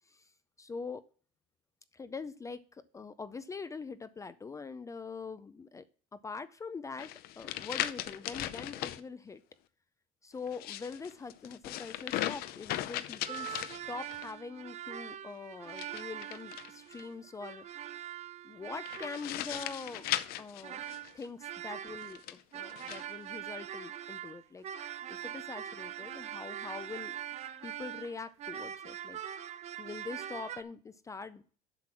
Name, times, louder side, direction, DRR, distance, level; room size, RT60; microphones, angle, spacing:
voice 1, 0.6-1.0 1.9-5.8 6.1-9.4 10.2-13.6 13.9-17.6 18.4-20.1 20.4-20.8 21.1-24.6 25.1-27.2 27.6-29.2 29.8-31.5, left 4 dB, 20° left, 14 dB, 0.4 m, -43 dB
sound 1, 7.0-9.0 10.4-14.3 15.7-17.0 18.9-21.3 22.0-23.0, left 13 dB, 60° left, 0.6 m, -38 dB
sound 2, 13.3-22.2 22.5-30.6, right 10 dB, 40° right, 0.6 m, -43 dB
7.7 x 6.0 x 5.9 m, 0.42 s
cardioid pair, 125°, 18 cm